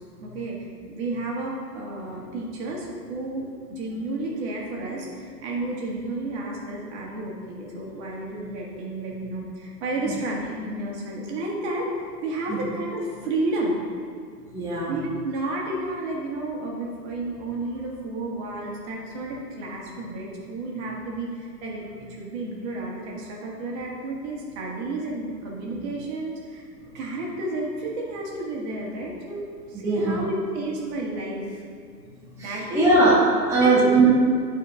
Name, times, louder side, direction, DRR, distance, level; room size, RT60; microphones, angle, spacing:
voice 1, 0.2-0.6 0.9-13.8 14.9-21.8 22.1-26.7 26.9-31.6 32.4-32.9 33.6-33.8, right 2 dB, 40° right, -3 dB, 2.0 m, -31 dB
voice 2, 14.5-14.9 29.7-30.2 32.4-33.2 33.5-34.1, right 2 dB, 5° right, -7 dB, 1.1 m, -20 dB
10.5 x 4.7 x 3.9 m, 2.2 s
hypercardioid pair, 120°, 49 cm